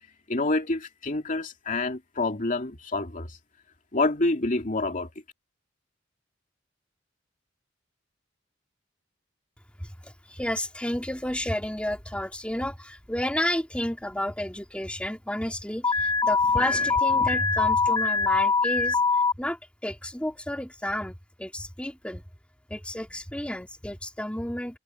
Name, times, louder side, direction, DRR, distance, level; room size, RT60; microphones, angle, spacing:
voice 1, 0.3-3.4 3.9-5.1, left 2 dB, 45° left, 2.5 m, -27 dB
voice 2, 10.0-19.0 19.4-19.6 19.8-22.2 22.7-24.8, left 1 dB, 5° left, 2.5 m, -31 dB
Alarm, 15.8-19.3, left 4 dB, 25° left, 1.7 m, -23 dB
head